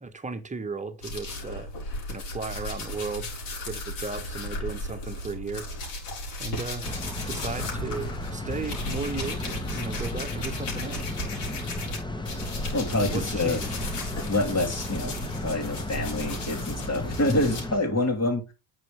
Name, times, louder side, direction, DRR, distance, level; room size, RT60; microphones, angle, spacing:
voice 1, 0.0-1.7 2.1-3.3 3.6-5.7 6.4-6.9 7.3-11.2 12.9-13.7, right 4 dB, 15° right, 1.4 m, -35 dB
sound 1, 1.0-12.0 12.2-17.6, left 1 dB, 70° left, 4.6 m, -35 dB
sound 2, 6.8-17.8, left 1 dB, 10° left, 1.3 m, -35 dB
voice 2, 12.7-13.6 14.3-15.1 15.4-18.5, left 2 dB, 30° left, 3.2 m, -26 dB
9.2 x 5.6 x 3.6 m
hypercardioid pair, 65°, 48 cm